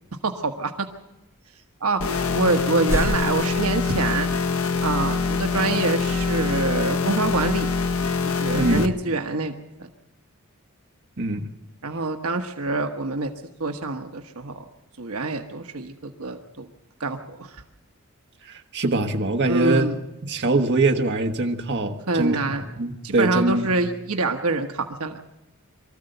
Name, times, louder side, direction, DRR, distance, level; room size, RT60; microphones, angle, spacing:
voice 1, 0.2-0.7 1.8-2.0 2.3-4.3 4.8-7.7 8.2-9.5 9.8-9.9 11.8-13.3 13.6-14.6 15.0-16.7 17.0-17.6 19.5-20.0 22.1-22.7 23.0-25.2, right 3 dB, 75° right, 6 dB, 1.2 m, -26 dB
sound 1, 2.0-8.9, left 4 dB, 65° left, 1.0 m, -24 dB
sound 2, 2.5-4.5, equal, 10° right, 1.5 m, -31 dB
voice 2, 8.5-8.9 11.2-11.4 18.5-19.9 20.2-23.7, right 2 dB, 50° right, 3 dB, 1.5 m, -23 dB
23.5 x 14.0 x 7.9 m, 0.98 s
head